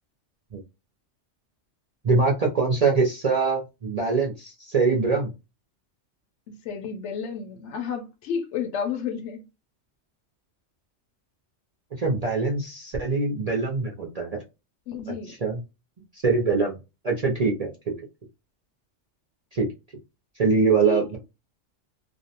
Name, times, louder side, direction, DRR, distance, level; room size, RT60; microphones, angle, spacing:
voice 1, 2.0-5.3 12.0-14.4 15.3-15.6 16.1-16.8 17.0-17.9 19.5-19.7 20.4-21.2, right 4 dB, 50° right, 0.4 m, -23 dB
voice 2, 6.5-9.4 14.9-15.4 20.8-21.2, left 6 dB, 70° left, 0.8 m, -31 dB
2.5 x 2.1 x 2.7 m
omnidirectional pair, 1.3 m